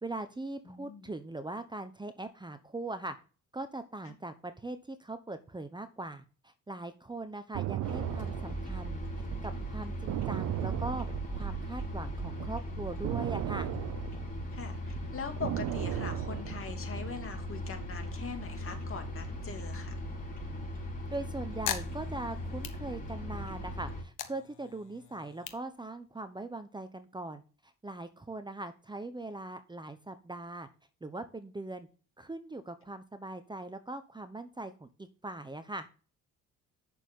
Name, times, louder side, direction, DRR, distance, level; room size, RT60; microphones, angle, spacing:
voice 1, 0.0-3.2 3.5-9.0 9.4-11.1 11.3-13.7 21.1-30.7 31.0-31.9 32.2-35.9, right 2 dB, 15° right, 10 dB, 1.0 m, -41 dB
voice 2, 0.7-1.1 4.1-4.2 14.5-20.0, left 5 dB, 45° left, 4 dB, 2.5 m, -42 dB
sound 1, 7.5-11.9 12.2-17.1, right 15 dB, 75° right, 0.5 m, -36 dB
sound 2, 7.8-24.0, equal, 25° left, 4.3 m, -38 dB
sound 3, 21.0-23.5 23.9-26.5, left 11 dB, 85° left, 1.3 m, -41 dB
8.9 x 6.7 x 3.7 m, 0.36 s
cardioid pair, 90°, 30 cm